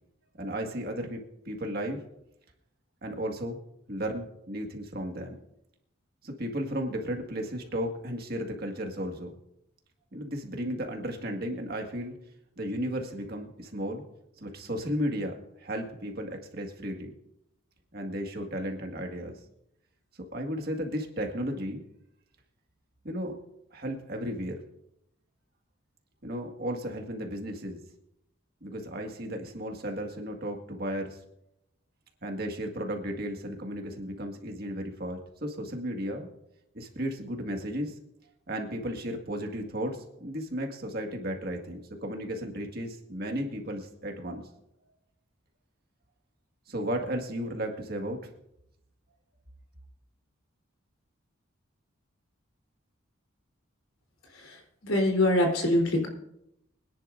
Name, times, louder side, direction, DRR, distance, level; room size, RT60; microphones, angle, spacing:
voice 1, 0.4-1.2 1.5-2.0 3.0-3.6 3.9-5.4 6.2-9.3 10.1-12.2 12.6-14.0 14.4-17.1 17.9-19.3 20.3-21.8 23.0-23.4 23.7-24.6 26.2-27.8 28.6-31.2 32.2-36.3 36.7-37.9 38.5-44.5 46.7-48.2, equal, 45° right, 2 dB, 1.8 m, -34 dB
voice 2, 54.3-56.1, left 1 dB, 85° left, 2 dB, 3.7 m, -25 dB
24.5 x 10.5 x 2.6 m, 0.80 s
head